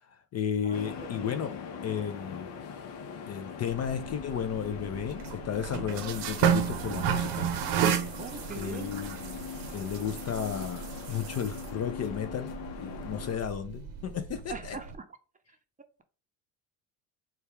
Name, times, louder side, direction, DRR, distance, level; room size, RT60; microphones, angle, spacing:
voice 1, 0.0-1.5 1.8-2.5 3.3-7.5 8.5-9.4 9.7-14.8, left 8 dB, 35° left, 0.4 m, -34 dB
voice 2, 0.6-1.3 8.2-8.9 14.5-15.1 15.5-15.6, right 4 dB, 20° right, 0.6 m, -42 dB
sound 1, 0.7-13.4, left 7 dB, 70° left, 0.9 m, -42 dB
sound 2, 3.7-14.9, right 8 dB, 70° right, 0.8 m, -33 dB
3.3 x 2.3 x 4.4 m
supercardioid pair, 75°, 45 cm